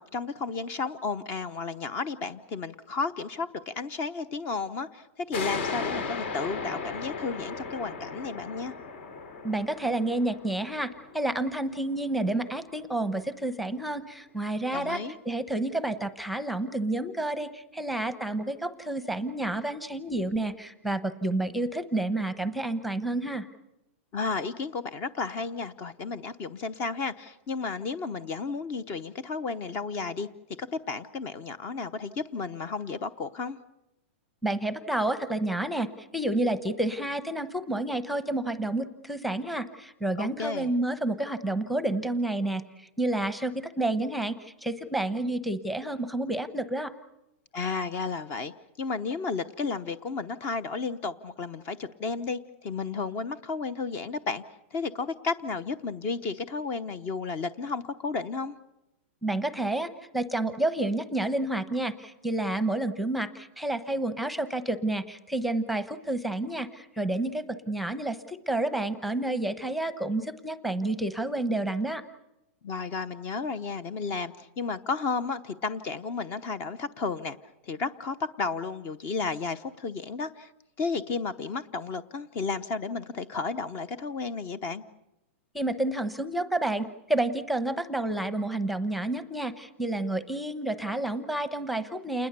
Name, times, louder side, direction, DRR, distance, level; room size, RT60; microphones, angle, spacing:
voice 1, 0.0-8.7 14.7-15.2 24.1-30.3 30.6-33.6 40.2-40.7 47.5-48.5 48.8-54.4 54.7-58.5 72.6-77.4 77.6-80.5 80.8-84.8, left 4 dB, 30° left, 15 dB, 0.9 m, -33 dB
sound 1, 5.3-12.5, left 4 dB, 60° left, 4.7 m, -36 dB
voice 2, 9.4-23.5 34.4-46.9 59.2-72.0 85.5-92.3, right 2 dB, ahead, 11 dB, 1.0 m, -30 dB
28.5 x 21.0 x 6.9 m, 0.88 s
hypercardioid pair, 155°, 7 cm